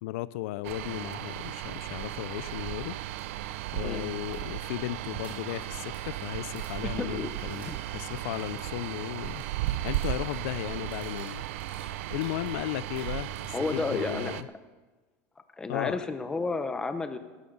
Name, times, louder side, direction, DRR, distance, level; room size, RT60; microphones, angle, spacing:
voice 1, 0.0-3.0 3.7-9.4 9.8-11.4 12.1-14.5 15.7-16.1, left 16 dB, 80° left, 17 dB, 0.4 m, -35 dB
sound 1, 0.6-14.4, right 14 dB, 85° right, 0.5 m, -35 dB
sound 2, 3.2-3.3 3.5-3.6 3.8-10.4 10.7-12.5 12.8-13.7 15.8-15.9, right 2 dB, 20° right, 4.3 m, -53 dB
voice 2, 6.8-7.3 7.7-7.8 13.5-14.3 15.6-17.2, left 3 dB, 10° left, 10 dB, 0.7 m, -31 dB
14.5 x 12.5 x 5.3 m, 1.3 s
cardioid pair, 170°, 7 cm